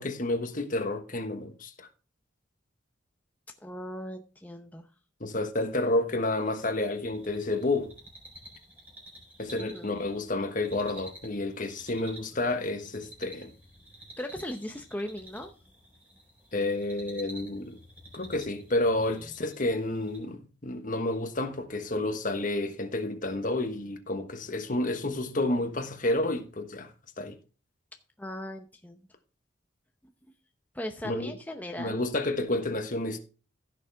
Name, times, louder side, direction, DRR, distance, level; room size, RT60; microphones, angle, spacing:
voice 1, 0.0-1.9 5.2-7.9 9.4-13.5 16.5-17.8 18.1-26.9 27.2-27.4 31.0-31.3 31.8-33.2, left 2 dB, 45° left, 1.4 m, -30 dB
voice 2, 3.6-4.9 9.7-9.9 14.2-15.5 19.1-19.2 28.2-29.1 30.7-32.0, left 1 dB, 10° left, 0.8 m, -38 dB
sound 1, 6.2-20.2, right 1 dB, 10° right, 4.2 m, -51 dB
15.5 x 6.5 x 3.5 m
head